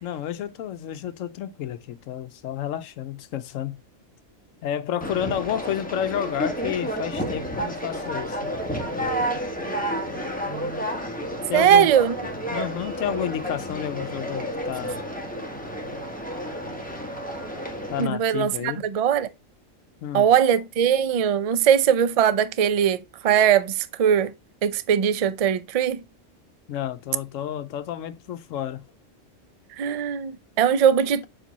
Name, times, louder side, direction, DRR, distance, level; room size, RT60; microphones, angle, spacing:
voice 1, 0.0-3.8 4.6-8.6 11.5-11.9 12.5-15.0 17.9-18.9 20.0-20.3 26.7-28.9, left 10 dB, 85° left, 1.0 m, -31 dB
Conversation, 5.0-18.1, equal, 5° left, 1.2 m, -31 dB
voice 2, 11.5-12.2 18.0-19.3 20.1-24.3 24.6-26.0 29.8-31.3, right 8 dB, 65° right, 0.3 m, -20 dB
7.3 x 3.4 x 4.0 m
omnidirectional pair, 1.3 m